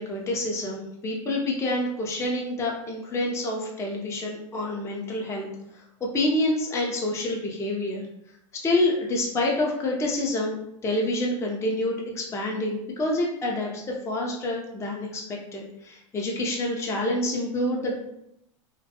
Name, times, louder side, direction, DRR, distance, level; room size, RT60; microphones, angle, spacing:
voice 1, 0.0-5.5 6.1-8.0 8.6-13.7 14.0-15.2 15.5-18.0, left 1 dB, 15° left, -1 dB, 0.5 m, -27 dB
2.2 x 2.1 x 2.7 m, 0.78 s
hypercardioid pair, 90°, 17 cm